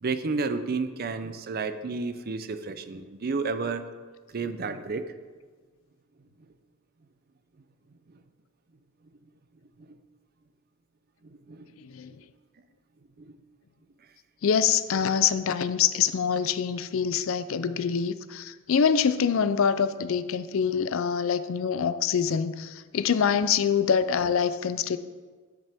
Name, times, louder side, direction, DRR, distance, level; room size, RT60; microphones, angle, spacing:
voice 1, 0.0-3.8 4.3-5.1 9.8-10.0 11.2-11.7 13.2-13.3, right 4 dB, 45° right, 10 dB, 0.5 m, -31 dB
voice 2, 11.8-12.1 14.4-25.0, left 7 dB, 65° left, 13 dB, 0.4 m, -25 dB
10.5 x 8.2 x 3.5 m, 1.5 s
head